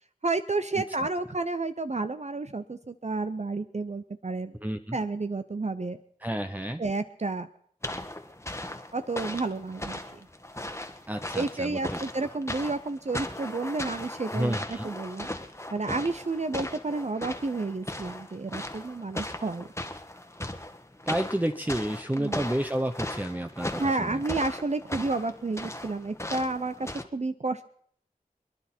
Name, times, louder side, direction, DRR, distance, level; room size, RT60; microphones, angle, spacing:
voice 1, 0.2-4.5 4.9-6.0 6.8-7.5 8.9-10.3 11.4-15.3 15.7-19.7 22.2-22.5 23.8-27.7, right 3 dB, 50° right, 10 dB, 0.7 m, -31 dB
voice 2, 4.6-5.0 6.2-6.8 11.1-12.0 14.3-14.9 21.1-24.2, right 1 dB, 10° right, 6 dB, 0.8 m, -30 dB
sound 1, 7.8-27.0, left 1 dB, 20° left, 1.4 m, -38 dB
27.0 x 10.5 x 4.4 m, 0.65 s
wide cardioid pair, 45°, 15 cm